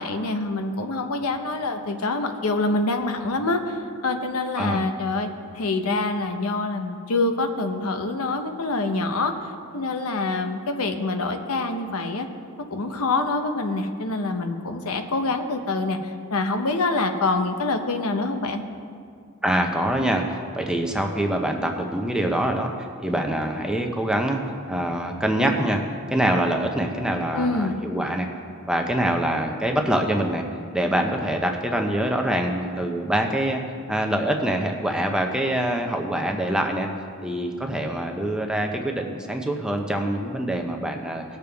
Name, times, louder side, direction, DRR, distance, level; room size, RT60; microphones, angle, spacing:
voice 1, 0.0-5.3 5.5-12.3 12.7-18.6 27.3-27.8, left 2 dB, 80° left, 6 dB, 0.8 m, -26 dB
voice 2, 4.6-4.9 19.4-24.4 24.7-25.8 26.1-28.3 28.7-30.4 30.7-33.6 33.9-36.9 37.2-41.2, right 1 dB, 5° right, 2 dB, 0.7 m, -25 dB
18.0 x 6.8 x 3.5 m, 2.3 s
head